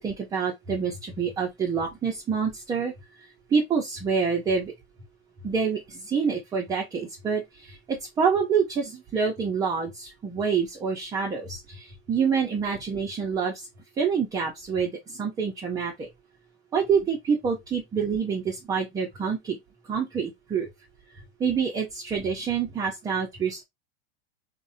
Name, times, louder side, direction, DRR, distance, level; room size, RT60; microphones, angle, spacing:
voice 1, 0.0-2.9 3.5-4.7 5.4-13.7 14.0-16.1 16.7-19.6 19.9-20.7 21.4-23.6, right 6 dB, 15° right, 0.3 m, -27 dB
2.6 x 2.0 x 2.4 m
supercardioid pair, 125°, 32 cm